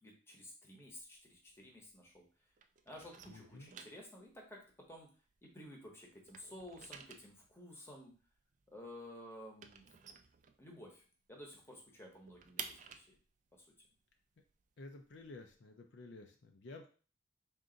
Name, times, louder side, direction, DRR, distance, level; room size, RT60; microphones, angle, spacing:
voice 1, 0.0-2.2 2.8-5.1 5.5-8.1 8.7-9.8 10.6-11.0 11.3-13.1 13.5-13.6, left 1 dB, 15° left, 0 dB, 0.9 m, -53 dB
sound 1, 0.8-2.3 2.5-5.8 6.1-11.1 11.4-11.5 11.8-15.5, right 7 dB, 40° right, 0.3 m, -53 dB
voice 2, 3.3-3.7 14.8-16.9, left 2 dB, 65° left, 4 dB, 0.5 m, -52 dB
3.8 x 2.6 x 3.8 m, 0.38 s
head